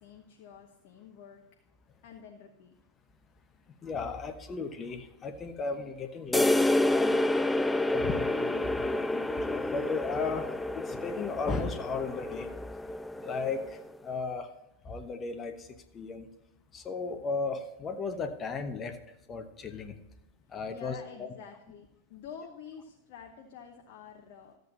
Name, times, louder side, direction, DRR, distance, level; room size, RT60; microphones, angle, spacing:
voice 1, 0.0-1.4 2.0-2.8 20.7-24.6, left 7 dB, 45° left, 3 dB, 1.0 m, -48 dB
voice 2, 3.8-7.2 7.9-10.5 10.7-12.5 13.2-13.6 14.0-14.5 14.8-15.5 15.9-16.3 16.7-19.0 19.3-20.0 20.5-21.3, left 4 dB, 25° left, 9 dB, 1.1 m, -35 dB
sound 1, 6.3-13.9, left 1 dB, 5° left, 0.3 m, -29 dB
13.5 x 8.0 x 4.0 m, 0.91 s
figure-of-eight pair, 90°, 0 cm